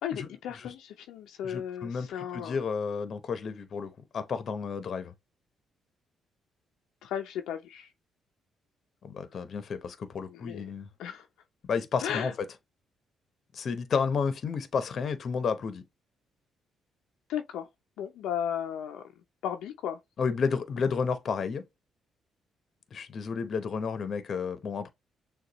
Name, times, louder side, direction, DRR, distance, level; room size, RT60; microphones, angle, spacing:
voice 1, 0.0-2.6 7.0-7.9 10.3-10.6 11.0-11.3 12.0-12.3 17.3-17.7 18.0-19.0 19.4-20.0, left 9 dB, 85° left, 0.5 m, -35 dB
voice 2, 1.4-5.1 9.0-10.9 11.7-12.3 13.5-15.8 20.2-21.6 22.9-24.9, left 5 dB, 55° left, 0.8 m, -31 dB
6.5 x 2.3 x 2.9 m
cardioid pair, 90°, 0 cm